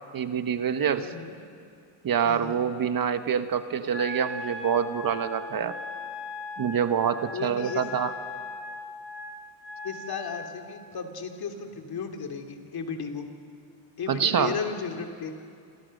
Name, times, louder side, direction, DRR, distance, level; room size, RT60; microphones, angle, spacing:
voice 1, 0.1-1.1 2.0-5.8 6.6-8.1 14.1-14.5, right 8 dB, 45° right, 9 dB, 1.3 m, -26 dB
voice 2, 1.0-1.4 2.2-2.6 7.3-7.9 9.8-13.3 14.0-15.3, left 6 dB, 50° left, 4 dB, 2.8 m, -34 dB
Wind instrument woodwind instrument, 3.9-10.5, left 2 dB, 25° left, 5.6 m, -39 dB
27.5 x 27.5 x 6.6 m, 2.4 s
cardioid pair, 130°, 49 cm